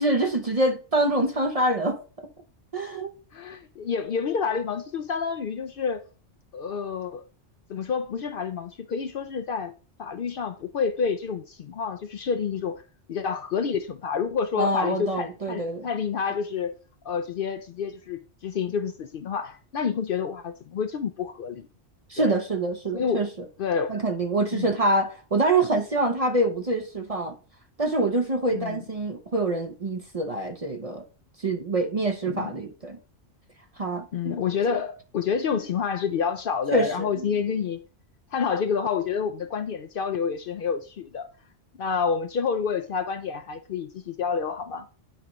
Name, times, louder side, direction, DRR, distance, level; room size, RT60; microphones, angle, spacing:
voice 1, 0.0-2.3 2.7-3.1 14.6-15.9 22.1-23.3 23.9-27.4 27.8-31.0 31.4-33.0 33.8-34.4 36.7-37.3, right 2 dB, 40° right, 0.7 m, -25 dB
voice 2, 3.3-6.0 6.5-7.2 7.7-9.7 10.0-12.8 13.1-16.7 17.0-21.7 22.2-22.3 22.9-23.2 23.6-23.9 24.5-24.7 28.5-28.8 32.3-32.5 34.1-37.8 38.3-41.3 41.8-44.9, left 6 dB, 60° left, 0.6 m, -28 dB
9.1 x 4.8 x 3.0 m
omnidirectional pair, 1.2 m